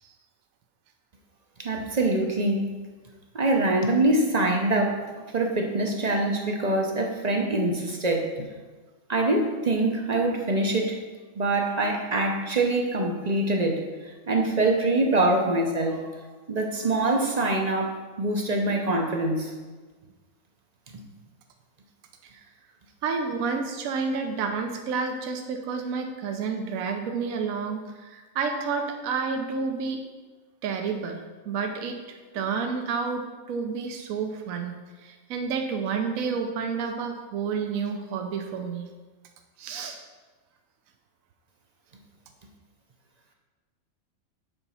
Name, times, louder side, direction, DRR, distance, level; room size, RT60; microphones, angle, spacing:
voice 1, 1.6-2.7 3.3-5.1 5.3-8.5 9.1-11.0 11.4-16.0 16.5-19.5, right 2 dB, 40° right, 2 dB, 0.6 m, -24 dB
voice 2, 23.0-30.0 30.6-34.8 35.0-38.9 39.6-40.0, right 5 dB, 75° right, 4 dB, 1.1 m, -30 dB
7.9 x 4.0 x 5.5 m, 1.3 s
omnidirectional pair, 1.5 m